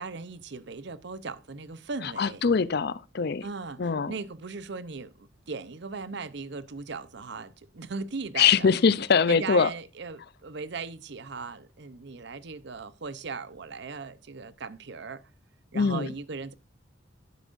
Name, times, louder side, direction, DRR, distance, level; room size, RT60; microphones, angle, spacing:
voice 1, 0.0-2.4 3.4-8.7 9.3-15.2 15.7-16.5, right 4 dB, 60° right, 0.7 m, -38 dB
voice 2, 2.2-3.5 3.8-4.1 8.4-9.7 15.7-16.1, left 6 dB, 55° left, 0.5 m, -23 dB
11.5 x 10.0 x 2.5 m
head